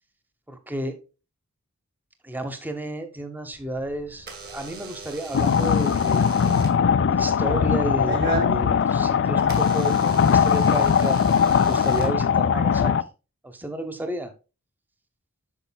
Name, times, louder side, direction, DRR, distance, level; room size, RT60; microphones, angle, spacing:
voice 1, 0.5-1.0 2.2-6.3 7.1-11.2 11.6-12.9 13.4-14.3, right 1 dB, 10° right, 7 dB, 0.8 m, -32 dB
Door / Alarm, 3.5-12.8, right 3 dB, 45° right, 1.9 m, -37 dB
sound 1, 5.3-13.0, left 7 dB, 55° left, 0.4 m, -20 dB
8.5 x 6.4 x 2.2 m, 0.31 s
head